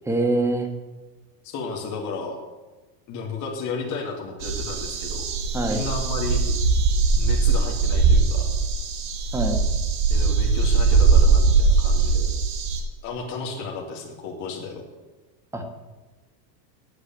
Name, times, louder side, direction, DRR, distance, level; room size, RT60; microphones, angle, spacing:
voice 1, 0.1-0.7 5.5-5.8 9.3-9.6 15.5-15.6, right 2 dB, 5° right, 3 dB, 1.5 m, -24 dB
voice 2, 1.4-2.4 3.1-5.3 5.6-6.4 7.2-8.5 10.1-12.3 13.0-14.8, left 4 dB, 35° left, -1 dB, 2.3 m, -33 dB
sound 1, 4.4-12.8, right 4 dB, 70° right, 2.9 m, -20 dB
8.4 x 8.1 x 8.8 m, 1.2 s
supercardioid pair, 140°, 49 cm